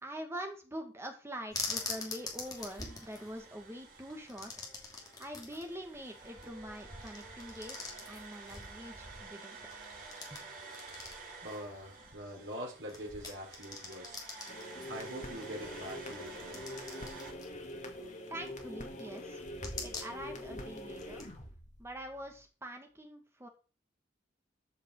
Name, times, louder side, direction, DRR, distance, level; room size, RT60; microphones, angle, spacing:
voice 1, 0.0-4.5 5.2-9.6 10.3-10.5 18.3-19.4 19.8-21.3 21.8-23.5, equal, 15° right, 4 dB, 2.1 m, -44 dB
sound 1, 1.5-21.3, left 3 dB, 20° left, 2.9 m, -46 dB
sound 2, 1.6-17.3, right 4 dB, 50° right, 2.9 m, -51 dB
voice 2, 11.4-14.2 14.9-16.6, equal, 80° right, -1 dB, 3.9 m, -44 dB
sound 3, 14.5-22.4, left 1 dB, 45° left, 2.3 m, -45 dB
13.5 x 5.9 x 4.8 m, 0.35 s
head